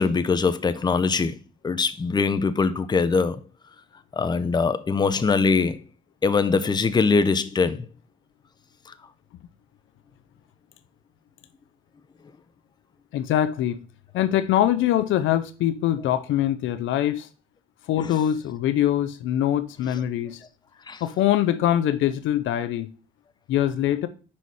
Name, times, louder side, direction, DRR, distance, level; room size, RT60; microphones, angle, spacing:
voice 1, 0.0-1.3 1.6-3.4 4.1-5.8 6.2-7.8 18.0-18.1 20.9-21.0, left 4 dB, 20° left, 0.5 m, -22 dB
voice 2, 13.1-13.8 14.1-17.3 17.9-20.4 21.0-22.9 23.5-24.1, left 11 dB, 80° left, 0.6 m, -23 dB
5.4 x 4.3 x 4.7 m
cardioid pair, 90°, 20 cm